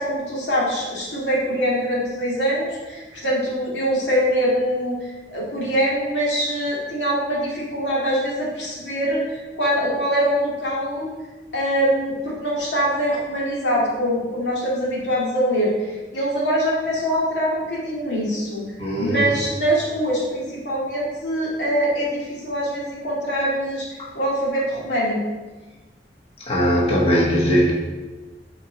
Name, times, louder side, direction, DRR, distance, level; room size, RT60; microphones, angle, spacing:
voice 1, 0.0-5.0 5.3-11.1 11.5-18.6 19.0-23.9 24.1-25.2, equal, 90° left, -5 dB, 2.1 m, -23 dB
voice 2, 18.8-19.3 24.0-24.1 26.4-27.7, equal, 35° left, -4 dB, 1.1 m, -19 dB
7.5 x 4.4 x 3.9 m, 1.3 s
head